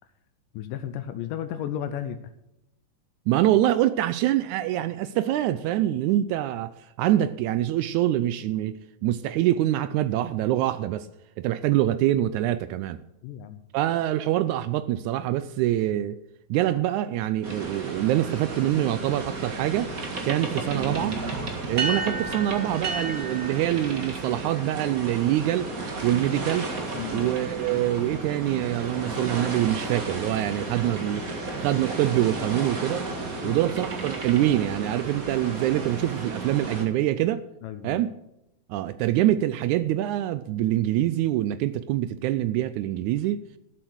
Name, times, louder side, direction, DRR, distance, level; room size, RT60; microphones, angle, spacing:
voice 1, 0.5-2.2 13.2-13.6 27.0-27.3 33.4-33.6 37.6-38.0, left 10 dB, 80° left, 2.2 m, -33 dB
voice 2, 3.3-8.8 9.0-11.1 11.4-13.0 13.7-16.2 16.5-19.9 20.2-21.2 21.7-25.7 26.0-26.7 27.1-31.3 31.6-33.1 33.4-37.4 37.8-38.1 38.7-43.4, right 13 dB, 85° right, 1.7 m, -25 dB
sound 1, 17.4-36.9, right 3 dB, 35° right, 1.5 m, -33 dB
13.5 x 8.0 x 6.3 m
omnidirectional pair, 4.0 m